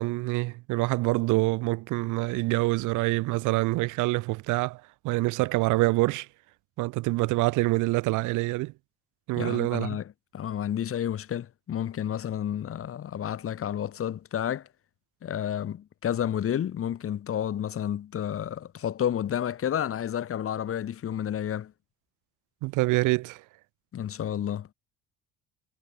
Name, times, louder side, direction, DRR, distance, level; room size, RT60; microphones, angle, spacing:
voice 1, 0.0-6.3 6.8-8.7 9.3-10.0 22.6-23.4, right 22 dB, 80° right, 1.7 m, -26 dB
voice 2, 9.4-14.7 15.2-21.7 23.9-24.7, left 10 dB, 45° left, 1.5 m, -31 dB
supercardioid pair, 85°, 30 cm